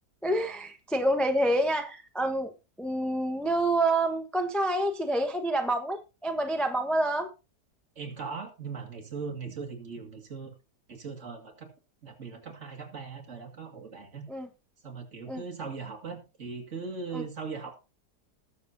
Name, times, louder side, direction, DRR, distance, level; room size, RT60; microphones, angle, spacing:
voice 1, 0.2-2.5 2.8-7.3 14.3-14.5 15.3-15.4 17.1-17.2, right 1 dB, ahead, 5 dB, 0.8 m, -27 dB
voice 2, 8.0-10.5 10.9-11.7 12.0-14.2 14.8-17.8, right 5 dB, 45° right, 3 dB, 2.3 m, -39 dB
19.5 x 7.0 x 2.7 m, 0.29 s
omnidirectional pair, 1.8 m